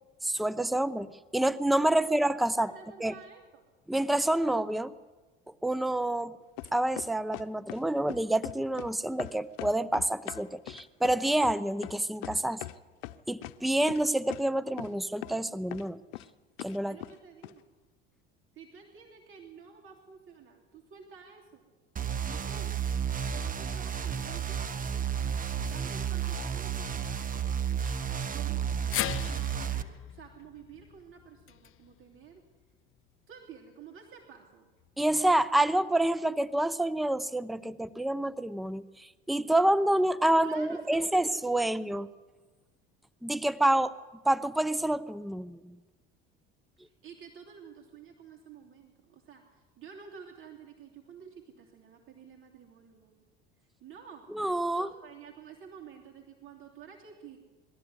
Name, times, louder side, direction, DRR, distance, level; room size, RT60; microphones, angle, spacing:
voice 1, 0.2-1.1 1.3-2.7 3.0-3.1 3.9-4.9 5.6-6.4 6.7-12.6 13.3-16.0 16.6-17.0 27.8-27.9 35.0-42.1 43.2-43.9 44.3-45.8 54.3-54.9, right 1 dB, ahead, 16 dB, 0.7 m, -28 dB
voice 2, 2.6-3.6 16.9-17.7 18.5-21.6 22.3-22.8 23.3-25.0 25.6-27.5 28.3-28.6 29.3-32.4 33.3-34.7 40.4-40.8 41.0-41.9 46.8-53.2 53.8-54.3 54.7-57.4, right 7 dB, 45° right, 0 dB, 3.1 m, -50 dB
sound 1, 6.6-7.8 8.1-8.9 9.2-12.8 13.0-13.6 13.9-14.0 14.3-14.4 14.8-14.9 15.2-15.4 15.7-16.2 16.6-17.1 17.4-17.5, left 18 dB, 80° left, 0.8 m, -40 dB
sound 2, 22.0-29.8, right 8 dB, 30° right, 1.2 m, -32 dB
sound 3, 28.9-33.2 33.5-33.6 34.8-34.9, left 15 dB, 45° left, 0.6 m, -39 dB
21.0 x 13.5 x 9.7 m, 1.3 s
supercardioid pair, 85°, 29 cm